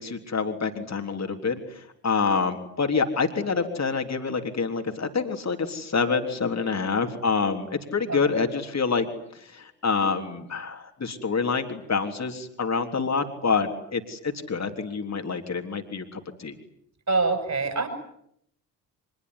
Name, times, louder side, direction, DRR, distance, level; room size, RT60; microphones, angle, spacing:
voice 1, 0.0-9.1 9.5-16.6, left 5 dB, 35° left, 5 dB, 3.6 m, -27 dB
voice 2, 17.1-17.9, right 3 dB, 35° right, 7 dB, 7.5 m, -24 dB
25.5 x 21.5 x 9.8 m, 0.73 s
figure-of-eight pair, 40°, 48 cm